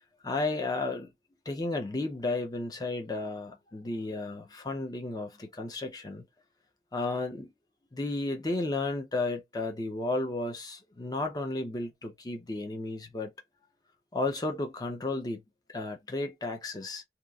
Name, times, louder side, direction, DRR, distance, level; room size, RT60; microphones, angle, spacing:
voice 1, 0.2-1.1 1.5-6.2 6.9-7.5 7.9-13.3 14.1-15.4 15.7-17.0, left 2 dB, 20° left, 0.5 m, -33 dB
2.9 x 2.3 x 2.3 m
head